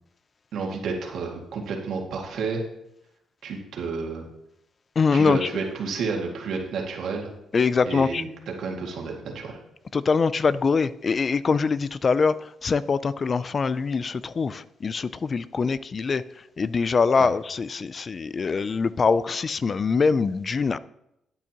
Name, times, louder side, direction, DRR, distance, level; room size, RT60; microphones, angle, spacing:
voice 1, 0.5-2.6 3.4-4.3 5.1-7.3 7.9-8.3 8.6-9.6 17.2-17.3, right 4 dB, 70° right, 0 dB, 2.0 m, -30 dB
voice 2, 5.0-5.5 7.5-8.2 9.9-12.3 12.6-16.2 16.6-20.8, left 5 dB, 40° left, 16 dB, 0.4 m, -23 dB
12.0 x 9.1 x 3.0 m, 0.83 s
cardioid pair, 90°, 0 cm